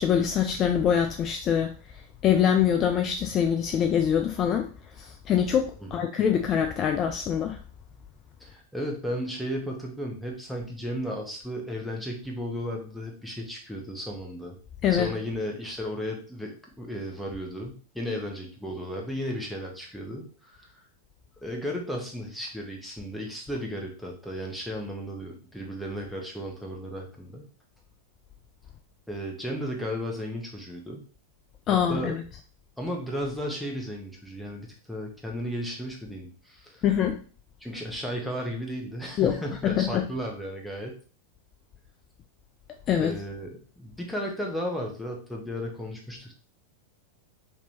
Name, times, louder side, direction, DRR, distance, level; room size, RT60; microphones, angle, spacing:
voice 1, 0.0-1.7 2.2-4.7 5.0-7.6 14.8-15.1 31.7-32.2 36.8-37.2 39.2-39.3 39.6-40.0 42.9-43.1, left 8 dB, 30° left, 4 dB, 0.4 m, -24 dB
voice 2, 8.4-14.6 14.9-20.7 21.4-27.4 29.1-31.0 31.9-32.2 32.8-36.8 37.6-41.0 43.0-46.3, equal, ahead, -1 dB, 1.1 m, -34 dB
3.3 x 2.9 x 4.1 m, 0.40 s
figure-of-eight pair, 90°, 0 cm